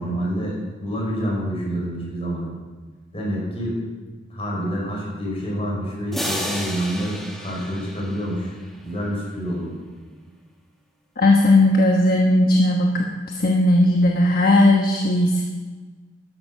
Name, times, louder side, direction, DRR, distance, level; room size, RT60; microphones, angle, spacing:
voice 1, 0.0-2.5 3.1-3.8 4.3-8.5 8.8-9.7, equal, 30° left, -3 dB, 5.4 m, -27 dB
sound 1, 6.1-8.8, equal, ahead, 1.5 m, -32 dB
voice 2, 11.2-13.0 13.4-15.4, left 1 dB, 50° left, 1 dB, 1.2 m, -17 dB
12.5 x 11.0 x 6.3 m, 1.4 s
head